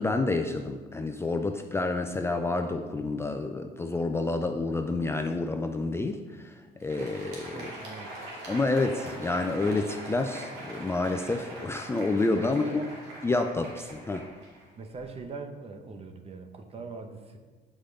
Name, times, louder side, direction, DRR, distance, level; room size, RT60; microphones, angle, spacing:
voice 1, 0.0-6.5 6.8-7.7 8.5-12.8 13.2-14.3, left 3 dB, 15° left, 5 dB, 0.4 m, -29 dB
Crowd, 6.7-15.2, right 1 dB, 85° right, 2.4 m, -43 dB
voice 2, 7.5-8.1 12.6-12.9 14.8-17.4, right 4 dB, 35° right, 6 dB, 0.9 m, -41 dB
7.9 x 5.1 x 5.2 m, 1.4 s
cardioid pair, 110°, 17 cm